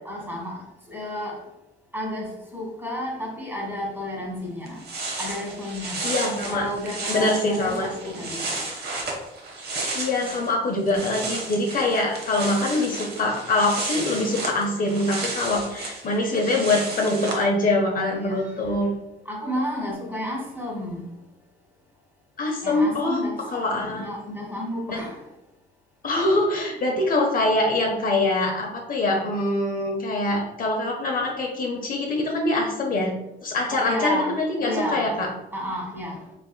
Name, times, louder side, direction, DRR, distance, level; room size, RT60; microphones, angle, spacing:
voice 1, 0.0-1.3 1.9-4.8 5.2-6.0 6.5-8.7 16.1-16.3 18.1-18.9 19.2-21.0 22.6-25.3 33.7-34.3 34.6-35.0 35.5-36.2, left 1 dB, 10° right, -2 dB, 1.4 m, -32 dB
sound 1, 4.4-4.5 4.7-10.5 10.8-17.4, right 3 dB, 55° right, 0.9 m, -33 dB
voice 2, 6.0-6.7 7.1-8.1 9.9-18.9 22.4-23.2 23.5-24.1 24.9-25.0 26.0-33.1 33.4-35.3, left 2 dB, 45° left, 0 dB, 0.7 m, -24 dB
3.5 x 3.3 x 2.2 m, 0.90 s
cardioid pair, 90°, 20 cm